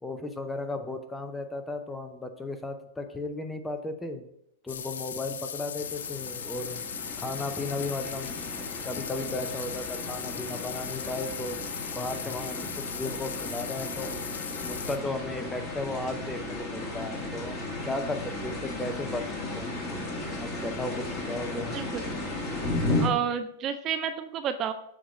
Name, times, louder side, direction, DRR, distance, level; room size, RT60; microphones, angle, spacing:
voice 1, 0.0-4.2 4.6-6.8 7.2-8.3 8.8-11.6 11.9-14.1 14.6-19.2 19.6-19.8 20.4-21.9, left 2 dB, 10° left, 7 dB, 0.6 m, -35 dB
sound 1, 4.7-15.0, left 7 dB, 85° left, 0.4 m, -38 dB
sound 2, 5.8-23.1, left 2 dB, 35° left, 1.7 m, -35 dB
voice 2, 23.0-24.7, right 8 dB, 35° right, 9 dB, 0.4 m, -30 dB
7.3 x 2.9 x 4.7 m, 0.75 s
hypercardioid pair, 125°, 0 cm